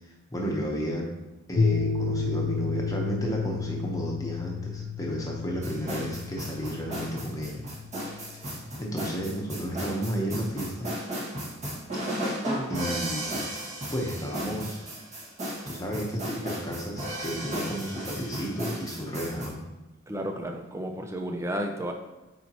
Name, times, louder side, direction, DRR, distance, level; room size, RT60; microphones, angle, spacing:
voice 1, 0.3-1.1 1.5-7.6 8.8-10.9 12.7-13.4 13.9-14.8 15.7-19.6, equal, 15° left, -1 dB, 1.0 m, -32 dB
sound 1, 1.6-8.6, left 4 dB, 70° left, 0.7 m, -31 dB
sound 2, 5.6-19.5, right 1 dB, 35° right, 2.0 m, -34 dB
voice 2, 20.1-21.9, right 1 dB, 15° right, 3 dB, 0.6 m, -32 dB
8.8 x 4.3 x 3.0 m, 1.1 s
head